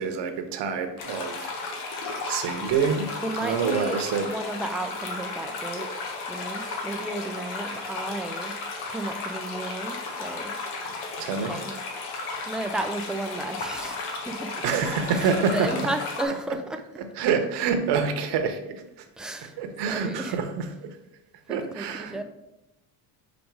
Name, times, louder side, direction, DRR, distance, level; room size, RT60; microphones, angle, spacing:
voice 1, 0.0-1.5 2.2-3.1 3.4-4.3 11.2-11.6 14.6-15.7 16.5-16.6 16.9-18.7 19.4-20.9 21.5-22.2, right 6 dB, 65° right, 7 dB, 1.1 m, -27 dB
sound 1, 1.0-16.2, left 3 dB, 90° left, 1.5 m, -34 dB
voice 2, 3.2-5.9 6.3-8.6 8.9-10.5 11.4-11.8 12.5-14.6 15.1-16.8 19.2-19.6 19.9-20.4 21.5-22.2, right 2 dB, ahead, 6 dB, 0.3 m, -33 dB
5.3 x 5.1 x 4.6 m, 0.91 s
cardioid pair, 110°, 44 cm